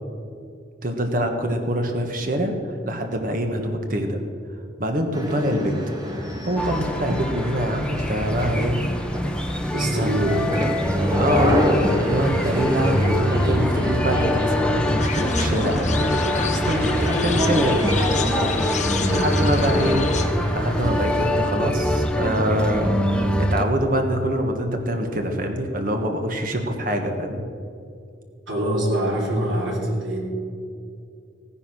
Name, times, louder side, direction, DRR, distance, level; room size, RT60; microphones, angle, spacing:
voice 1, 0.8-2.5 2.8-4.2 4.8-5.8 6.4-8.8 9.9-10.2 11.2-16.1 16.5-17.8 19.1-20.1 20.5-27.4, equal, 45° right, 4 dB, 1.4 m, -25 dB
sound 1, 5.1-21.7, equal, 20° right, 1.8 m, -29 dB
sound 2, 6.6-23.6, equal, 5° left, 0.7 m, -24 dB
voice 2, 9.7-10.4 18.9-19.3 28.5-30.2, right 1 dB, 80° right, -2 dB, 3.2 m, -25 dB
sound 3, 15.0-20.3, left 4 dB, 40° left, 1.0 m, -28 dB
16.0 x 10.0 x 6.1 m, 2.5 s
head